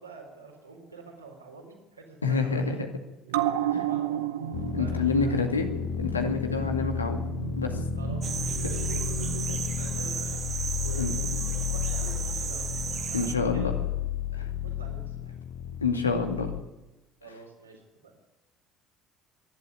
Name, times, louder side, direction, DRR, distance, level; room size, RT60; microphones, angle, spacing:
voice 1, 0.0-2.8 3.5-4.3 4.8-5.5 7.9-10.4 10.8-13.9 14.3-15.4 17.2-18.2, right 3 dB, 85° right, 1 dB, 4.4 m, -47 dB
voice 2, 2.2-2.9 3.7-3.8 4.7-5.7 6.0-7.2 7.6-7.8 9.5-9.6 11.0-11.2 13.1-13.7 14.3-14.5 15.8-16.5, left 4 dB, 85° left, 5 dB, 2.1 m, -28 dB
sound 1, 3.3-10.2 10.5-10.6, right 11 dB, 70° right, 1.1 m, -33 dB
sound 2, 4.5-16.6, left 10 dB, 55° left, 1.2 m, -32 dB
sound 3, 8.2-13.3, right 7 dB, 40° right, 2.1 m, -34 dB
26.0 x 11.5 x 9.7 m, 1.1 s
figure-of-eight pair, 55°, 0 cm